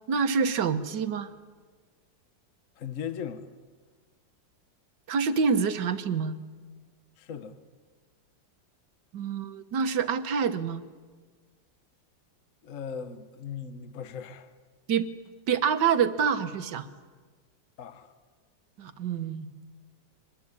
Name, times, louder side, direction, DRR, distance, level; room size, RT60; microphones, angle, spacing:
voice 1, 0.1-1.3 5.1-6.4 9.1-10.8 14.9-15.1 15.5-16.9 18.8-19.5, right 6 dB, 70° right, 1.8 m, -26 dB
voice 2, 2.8-3.5 7.2-7.6 12.6-14.5 17.8-18.1, left 7 dB, 50° left, 1.4 m, -38 dB
24.0 x 20.0 x 9.7 m
omnidirectional pair, 2.0 m